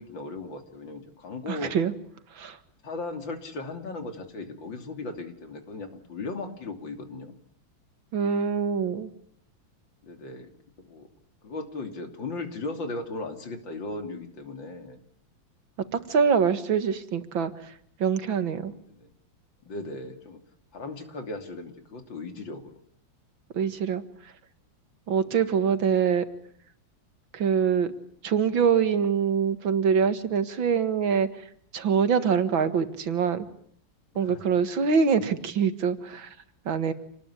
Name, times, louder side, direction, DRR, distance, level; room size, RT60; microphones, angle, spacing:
voice 1, 0.0-1.8 2.8-7.3 10.0-10.5 10.8-11.1 11.4-15.0 16.0-16.3 18.9-19.1 19.6-20.4 20.7-22.8 25.1-25.4 34.1-34.4, left 3 dB, 75° left, 6 dB, 3.7 m, -37 dB
voice 2, 1.5-1.9 2.3-2.6 8.1-9.1 16.1-17.5 18.0-18.7 23.5-24.0 25.1-26.2 27.3-27.9 28.2-31.3 31.7-33.5 34.2-36.3 36.7-36.9, right 6 dB, 80° right, 11 dB, 2.5 m, -24 dB
27.5 x 19.5 x 9.9 m, 0.66 s
omnidirectional pair, 2.1 m